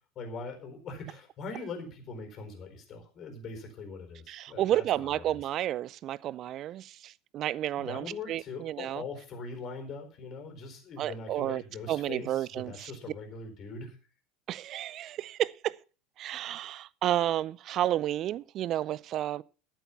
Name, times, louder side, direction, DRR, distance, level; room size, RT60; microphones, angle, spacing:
voice 1, 0.1-5.4 7.8-14.0, left 3 dB, 40° left, 4.3 m, -42 dB
voice 2, 4.3-9.0 11.0-11.6 11.9-12.9 14.5-15.7 16.2-19.4, right 12 dB, 45° right, 0.5 m, -31 dB
13.0 x 8.4 x 5.8 m
figure-of-eight pair, 75°, 0 cm